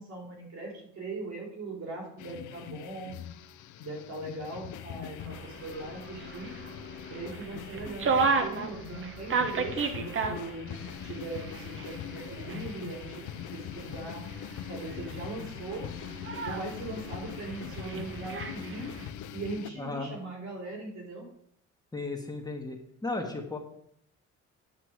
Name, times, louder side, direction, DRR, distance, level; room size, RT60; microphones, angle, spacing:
voice 1, 0.0-3.1 3.8-6.5 7.1-10.7 11.0-13.2 13.5-14.3 14.7-15.9 16.4-18.9 19.3-21.3, right 3 dB, 65° right, -2 dB, 4.0 m, -40 dB
sound 1, 2.2-19.7, left 10 dB, 80° left, 0.6 m, -42 dB
sound 2, 5.2-19.1, right 4 dB, 45° right, 1.1 m, -35 dB
voice 2, 19.7-20.1 21.9-23.6, left 3 dB, 15° left, 1 dB, 1.5 m, -35 dB
9.5 x 5.9 x 4.7 m, 0.69 s
cardioid pair, 90°, 30 cm